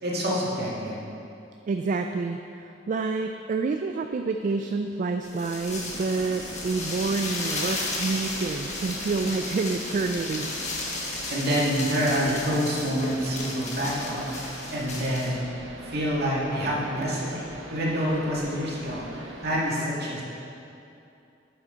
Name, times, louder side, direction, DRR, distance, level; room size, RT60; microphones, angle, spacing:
voice 1, 0.0-1.0 11.3-15.5 15.8-17.4 17.7-20.2, equal, 60° right, -5 dB, 2.0 m, -27 dB
voice 2, 1.7-10.5, right 4 dB, 45° right, 6 dB, 0.3 m, -28 dB
sound 1, 5.2-15.3, left 2 dB, 40° left, 1.2 m, -34 dB
sound 2, 5.7-19.6, right 1 dB, 80° right, 1.0 m, -42 dB
9.1 x 7.9 x 3.8 m, 2.7 s
head